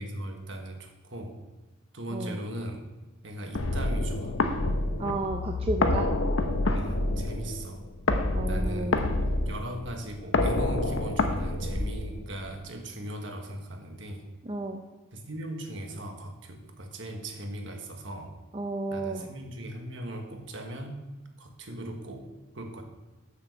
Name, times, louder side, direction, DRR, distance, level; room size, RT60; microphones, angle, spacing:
voice 1, 0.0-1.4 1.9-2.8 3.2-4.3 6.7-7.8 8.5-14.3 15.1-18.4 18.9-21.0 21.4-22.3 22.5-22.8, right 1 dB, 65° right, 3 dB, 1.5 m, -38 dB
sound 1, 3.6-12.5, left 2 dB, 75° left, 0.9 m, -28 dB
voice 2, 5.0-6.1 8.3-9.0 14.4-14.8 18.5-19.3, right 2 dB, 30° right, 3 dB, 0.6 m, -32 dB
7.1 x 6.9 x 6.9 m, 1.2 s
head